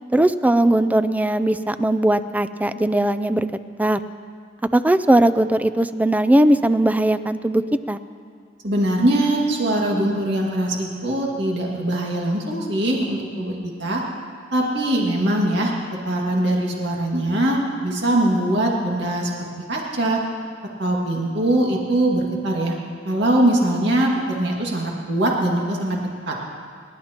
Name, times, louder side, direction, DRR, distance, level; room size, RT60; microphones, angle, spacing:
voice 1, 0.1-3.5 3.8-4.0 4.7-7.6 7.9-8.0, right 1 dB, 10° right, 12 dB, 0.3 m, -19 dB
voice 2, 8.6-13.5 13.8-14.0 14.5-15.7 16.0-19.3 19.7-20.2 20.8-22.7 23.0-26.0 26.3-26.4, right 1 dB, 70° right, -2 dB, 2.0 m, -21 dB
29.5 x 11.5 x 2.9 m, 2.1 s
head